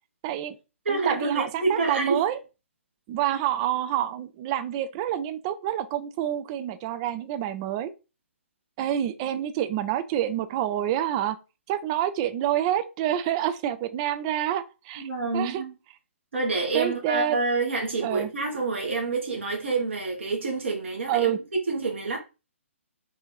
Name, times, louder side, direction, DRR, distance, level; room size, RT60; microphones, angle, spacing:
voice 1, 0.2-0.6 0.9-2.4 3.1-7.9 8.8-11.4 11.7-15.0 15.3-15.6 16.7-17.4 18.0-18.3 21.1-21.4, right 11 dB, 25° right, 0.4 m, -27 dB
voice 2, 0.8-2.2 15.0-15.7 16.3-22.2, right 3 dB, 60° right, 1.5 m, -28 dB
3.8 x 2.6 x 4.6 m
figure-of-eight pair, 130°, 7 cm